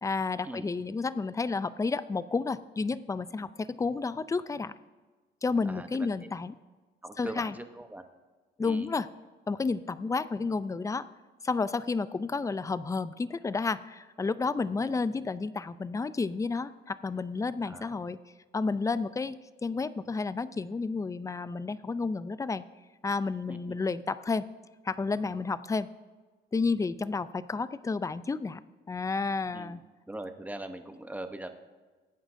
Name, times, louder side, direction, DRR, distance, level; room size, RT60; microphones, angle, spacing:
voice 1, 0.0-4.7 5.4-6.5 7.2-7.5 8.6-9.1 9.5-11.1 11.4-18.2 18.5-22.6 23.0-24.5 24.8-25.9 26.5-28.6 28.9-29.8, left 4 dB, 15° left, 15 dB, 0.4 m, -31 dB
voice 2, 5.6-6.3 7.0-8.0 8.6-8.9 14.8-15.0 17.6-18.0 23.5-23.8 29.5-29.8 30.1-31.5, right 1 dB, 10° right, 7 dB, 0.9 m, -41 dB
20.5 x 9.0 x 2.7 m, 1.3 s
cardioid pair, 90°, 20 cm